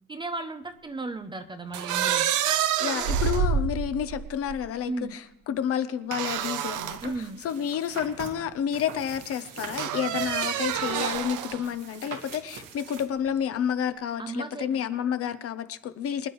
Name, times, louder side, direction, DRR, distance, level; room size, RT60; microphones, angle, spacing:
voice 1, 0.1-2.3 2.8-3.1 4.8-5.2 7.0-7.4 14.2-14.7, right 2 dB, 15° right, 9 dB, 0.5 m, -35 dB
sound 1, 1.7-4.6 6.1-7.0 7.7-7.8 9.8-11.7, right 8 dB, 65° right, 0.8 m, -27 dB
voice 2, 2.8-7.1 7.4-16.3, left 9 dB, 45° left, 11 dB, 0.7 m, -30 dB
sound 2, 6.2-13.1, right 6 dB, 80° right, 2.0 m, -43 dB
25.0 x 10.5 x 3.1 m, 0.84 s
cardioid pair, 175°, 33 cm